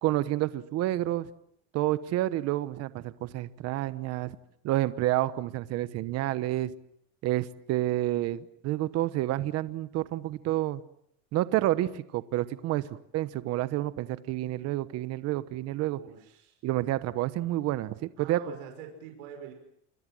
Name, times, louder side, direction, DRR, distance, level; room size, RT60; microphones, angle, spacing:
voice 1, 0.0-1.3 1.7-4.4 4.6-6.7 7.2-10.8 11.3-12.9 13.1-16.0 16.6-18.4, right 15 dB, 40° right, 14 dB, 1.1 m, -29 dB
voice 2, 15.9-16.6 18.2-19.5, right 8 dB, 85° right, 4 dB, 5.9 m, -45 dB
29.0 x 22.0 x 7.7 m, 0.71 s
cardioid pair, 155°, 37 cm